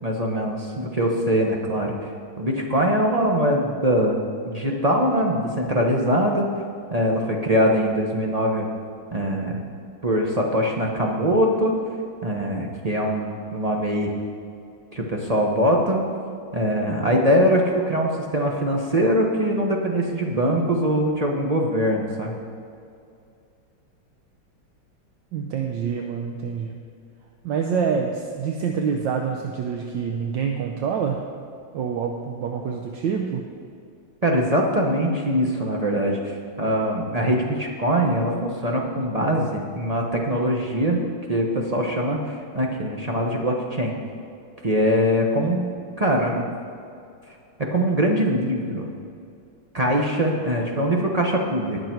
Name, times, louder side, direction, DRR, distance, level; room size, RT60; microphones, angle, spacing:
voice 1, 0.0-2.1 2.4-4.2 4.4-6.5 6.9-8.7 9.1-9.6 10.0-11.7 12.2-14.1 14.9-16.0 16.5-22.3 34.2-41.0 41.3-43.9 44.6-46.5 47.7-48.9 49.7-51.8, equal, 35° right, 0 dB, 0.6 m, -22 dB
voice 2, 25.3-26.8 27.4-31.2 31.7-33.5, right 6 dB, 70° right, 3 dB, 1.3 m, -26 dB
19.0 x 6.8 x 4.6 m, 2.5 s
omnidirectional pair, 2.2 m